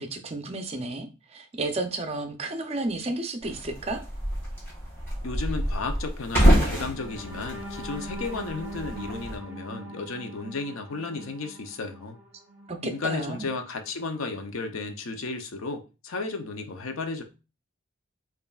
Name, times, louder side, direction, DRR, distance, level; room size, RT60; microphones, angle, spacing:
voice 1, 0.0-4.0 12.7-13.5, right 2 dB, 30° right, 0.5 m, -32 dB
sound 1, 3.4-9.4, equal, 10° left, 1.6 m, -27 dB
voice 2, 5.2-12.2 12.8-17.2, left 3 dB, 80° left, 0.6 m, -34 dB
sound 2, 6.9-12.9 13.3-13.5 13.9-14.1, equal, 10° right, 1.1 m, -42 dB
5.3 x 2.5 x 2.3 m
head